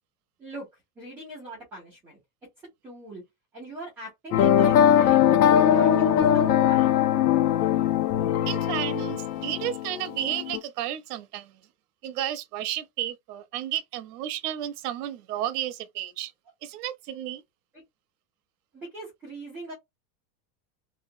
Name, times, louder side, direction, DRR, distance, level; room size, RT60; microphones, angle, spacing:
voice 1, 1.0-2.2 2.8-3.2 3.5-6.9 18.7-19.7, right 2 dB, 5° right, 0.3 m, -40 dB
sound 1, 4.3-10.6, left 10 dB, 75° left, 0.7 m, -21 dB
voice 2, 8.5-11.5 12.0-16.3 16.6-17.4, right 12 dB, 80° right, 0.6 m, -32 dB
2.7 x 2.2 x 2.5 m
supercardioid pair, 160°, 46 cm